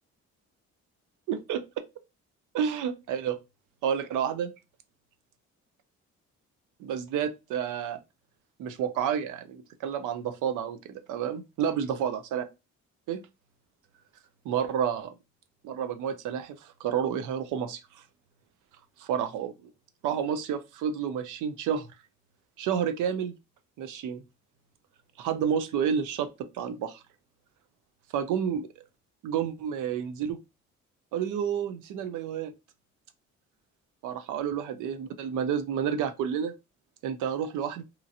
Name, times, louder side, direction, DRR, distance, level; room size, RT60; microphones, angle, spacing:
voice 1, 1.3-1.6 2.5-3.4 3.8-4.5 6.8-8.0 8.6-12.4 13.1-13.2 14.4-15.1 15.6-18.0 19.0-19.7 20.0-21.9 22.6-23.3 23.8-24.2 25.2-27.0 28.1-28.7 29.2-30.4 31.1-32.5 34.0-36.5 37.0-37.8, right 8 dB, 85° right, 0.6 m, -30 dB
2.9 x 2.5 x 2.6 m
cardioid pair, 90°, 30 cm